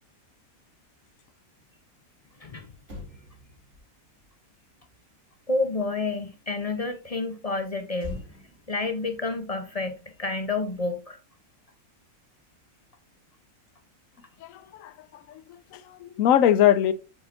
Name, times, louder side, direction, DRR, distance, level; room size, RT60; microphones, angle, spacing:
Motor vehicle (road), 2.8-6.3 8.0-10.6 10.8-11.1, left 1 dB, 50° right, 3.9 m, -46 dB
voice 1, 5.5-8.2 8.7-11.2, left 3 dB, 40° left, 0.5 m, -29 dB
voice 2, 14.4-14.9 15.3-15.4 15.7-16.9, left 11 dB, 70° left, 1.0 m, -22 dB
7.9 x 7.8 x 2.5 m
omnidirectional pair, 1.6 m